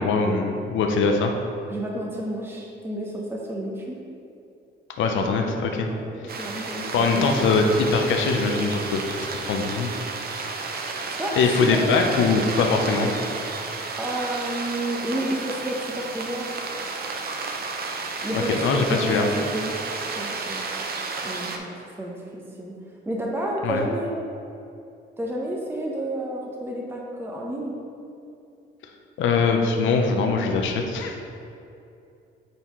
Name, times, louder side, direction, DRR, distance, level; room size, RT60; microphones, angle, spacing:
voice 1, 0.0-1.3 5.0-5.9 6.2-6.4 6.9-9.9 11.3-13.1 18.3-19.3 23.6-23.8 29.2-31.1, left 4 dB, 75° left, 3 dB, 0.7 m, -22 dB
voice 2, 1.7-4.0 5.9-6.9 7.1-7.3 11.2-11.8 12.1-12.6 14.0-16.6 18.2-19.8 20.1-20.7 21.2-22.7 23.1-24.1 25.2-27.8, right 1 dB, 10° right, -2 dB, 0.9 m, -31 dB
sound 1, 6.3-21.6, right 4 dB, 50° right, 0.6 m, -32 dB
9.0 x 4.2 x 3.1 m, 2.6 s
cardioid pair, 90°, 20 cm